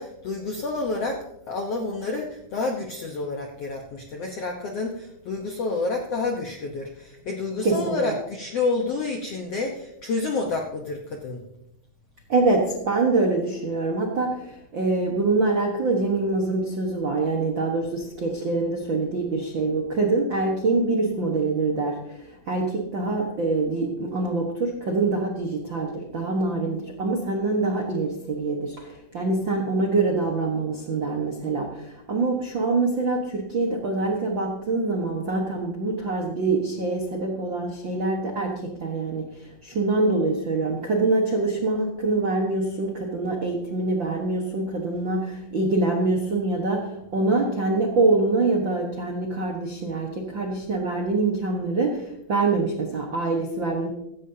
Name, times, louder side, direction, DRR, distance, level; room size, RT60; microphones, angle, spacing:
voice 1, 0.0-11.4, left 3 dB, 70° left, 2 dB, 1.5 m, -29 dB
voice 2, 7.6-8.1 12.3-53.9, right 3 dB, 60° right, 0 dB, 1.2 m, -25 dB
16.0 x 15.0 x 2.8 m, 0.83 s
omnidirectional pair, 4.4 m